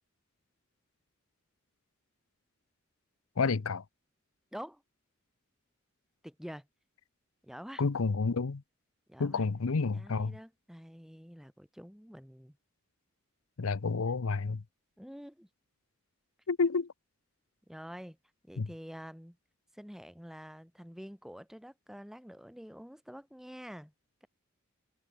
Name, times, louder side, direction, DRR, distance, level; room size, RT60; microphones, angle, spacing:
voice 1, 3.4-3.8 7.8-8.6 9.2-10.4 13.6-14.6 16.5-16.9 18.6-18.7, left 4 dB, 85° left, 0.7 m, -30 dB
voice 2, 4.5-4.8 6.2-6.7 7.4-7.8 9.1-9.4 9.9-12.6 15.0-15.5 17.7-18.2 18.4-19.4 19.7-23.9 24.2-24.3, equal, ahead, 1.3 m, -47 dB
head